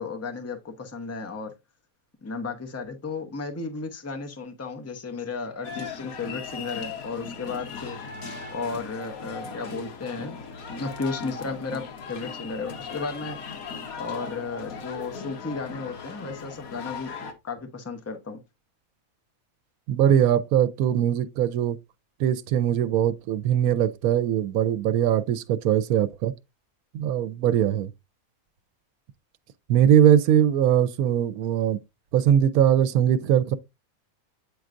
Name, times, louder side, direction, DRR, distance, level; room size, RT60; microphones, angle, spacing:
voice 1, 0.0-1.5 2.2-8.1 8.5-10.4 10.8-13.4 14.0-17.1 17.4-18.4, left 4 dB, 15° left, 0.6 m, -34 dB
sound 1, 5.6-17.3, left 5 dB, 75° left, 1.5 m, -38 dB
voice 2, 19.9-21.8 22.2-26.3 26.9-27.9 29.7-31.8 32.1-33.6, right 10 dB, 85° right, 1.1 m, -21 dB
8.6 x 4.6 x 2.5 m
omnidirectional pair, 1.5 m